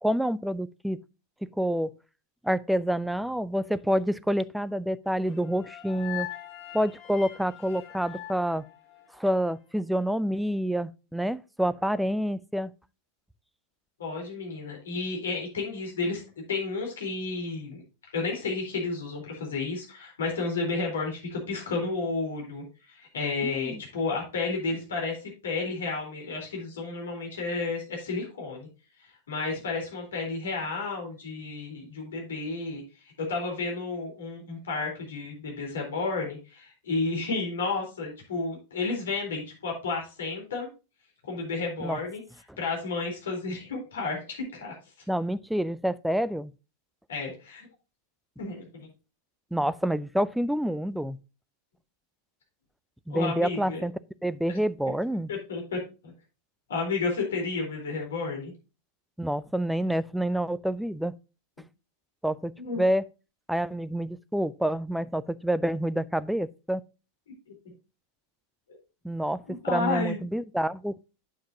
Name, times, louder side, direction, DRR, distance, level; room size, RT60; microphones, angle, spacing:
voice 1, 0.0-1.0 1.6-1.9 2.4-6.3 6.7-8.6 9.1-12.7 23.4-23.8 41.8-42.0 45.1-46.5 49.5-51.2 53.1-53.9 54.2-55.3 59.2-61.1 62.2-63.0 63.5-66.8 69.0-69.4 69.7-70.9, equal, ahead, 0.4 m, -28 dB
sound 1, 5.2-9.4, left 14 dB, 40° left, 2.2 m, -42 dB
voice 2, 14.0-16.2 16.5-17.8 18.1-28.7 29.3-32.8 33.3-40.7 41.2-42.2 42.6-44.7 47.1-47.7 48.4-48.9 53.1-53.8 55.3-55.8 56.0-56.1 56.7-58.5 62.6-62.8 67.5-67.7 69.5-70.2, left 3 dB, 65° left, 3.8 m, -32 dB
8.7 x 7.3 x 2.7 m
figure-of-eight pair, 90°, 0 cm